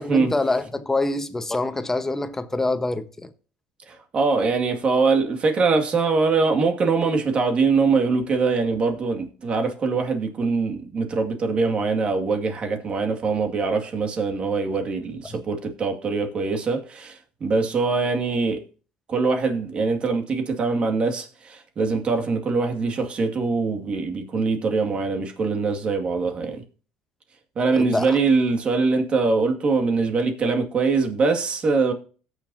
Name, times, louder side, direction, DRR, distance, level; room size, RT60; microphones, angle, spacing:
voice 1, 0.0-3.3 15.3-15.4 27.8-28.2, left 2 dB, 15° left, 1.1 m, -25 dB
voice 2, 3.9-18.6 19.1-26.6 27.6-31.9, right 4 dB, 40° right, 2.1 m, -23 dB
17.0 x 6.8 x 2.8 m
supercardioid pair, 90°, 3 cm